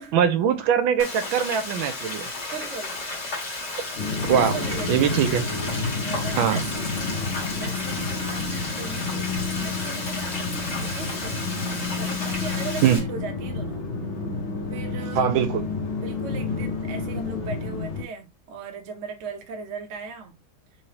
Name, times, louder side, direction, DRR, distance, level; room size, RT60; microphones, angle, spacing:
voice 1, 0.1-2.3 4.1-4.6 4.9-5.4 6.4-6.6 12.8-13.0 15.2-15.6, right 8 dB, 80° right, 1.3 m, -22 dB
Frying (food), 1.0-13.0, left 2 dB, 50° left, 1.8 m, -33 dB
voice 2, 2.5-3.0 4.2-5.2 6.0-13.9 14.7-15.4 16.0-20.3, right 5 dB, 60° right, 0.7 m, -38 dB
sound 1, 4.0-18.0, left 4 dB, 80° left, 1.6 m, -30 dB
3.8 x 3.2 x 2.8 m
omnidirectional pair, 2.2 m